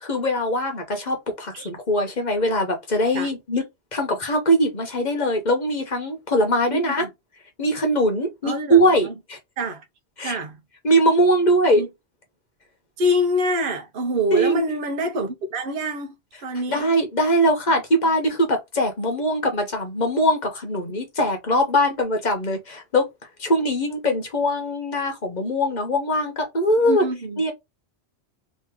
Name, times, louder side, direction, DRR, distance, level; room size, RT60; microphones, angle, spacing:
voice 1, 0.0-3.6 3.9-7.0 7.6-9.4 10.2-10.4 10.8-11.8 14.3-14.6 16.7-23.1 23.4-27.0 27.4-27.5, equal, 45° left, 1.1 m, -21 dB
voice 2, 6.7-7.1 8.4-9.1 9.6-9.8 10.2-10.6 11.7-11.9 13.0-16.1 16.4-16.9 26.8-27.4, equal, 60° right, 0.9 m, -25 dB
3.0 x 2.9 x 3.6 m
omnidirectional pair, 1.1 m